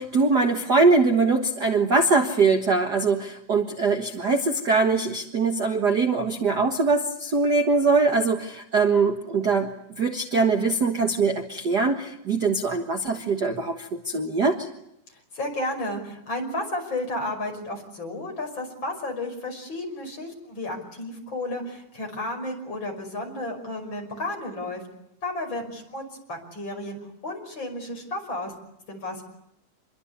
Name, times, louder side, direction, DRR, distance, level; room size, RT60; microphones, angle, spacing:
voice 1, 0.0-14.7, right 4 dB, 40° right, 4 dB, 1.7 m, -22 dB
voice 2, 15.3-24.8 25.2-27.0 27.2-28.5 28.9-29.2, left 1 dB, 35° left, 3 dB, 6.3 m, -32 dB
27.0 x 22.5 x 8.2 m, 0.80 s
omnidirectional pair, 3.5 m